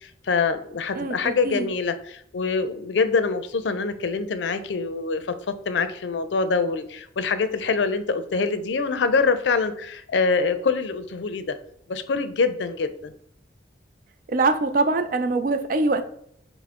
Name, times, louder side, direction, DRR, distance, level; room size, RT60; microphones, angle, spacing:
voice 1, 0.0-5.3 5.7-11.6 11.9-13.1, left 4 dB, 80° left, 10 dB, 0.5 m, -25 dB
voice 2, 0.9-1.7 14.3-16.1, right 3 dB, 50° right, 9 dB, 0.4 m, -23 dB
5.6 x 2.0 x 3.6 m, 0.68 s
head